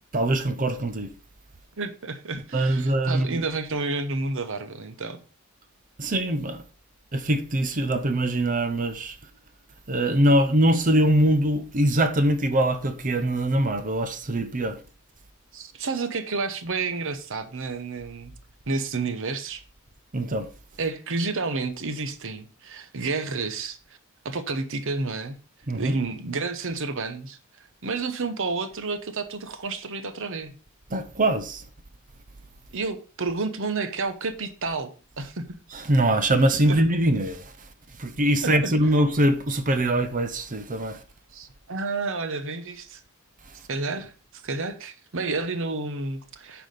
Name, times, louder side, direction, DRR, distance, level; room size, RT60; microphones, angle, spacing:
voice 1, 0.1-1.1 2.5-3.4 6.0-6.6 7.1-9.2 9.9-14.8 20.1-20.5 25.7-26.0 30.9-31.6 35.7-37.5 38.0-41.0, right 1 dB, 40° right, 0.8 m, -23 dB
voice 2, 1.8-5.2 15.5-18.3 18.7-19.6 20.8-23.8 24.2-25.4 25.7-27.4 27.8-30.5 32.7-34.9 35.2-35.6 36.7-36.8 38.4-38.7 41.3-43.0 43.7-46.7, right 3 dB, 65° right, 1.0 m, -30 dB
9.3 x 4.8 x 5.2 m
head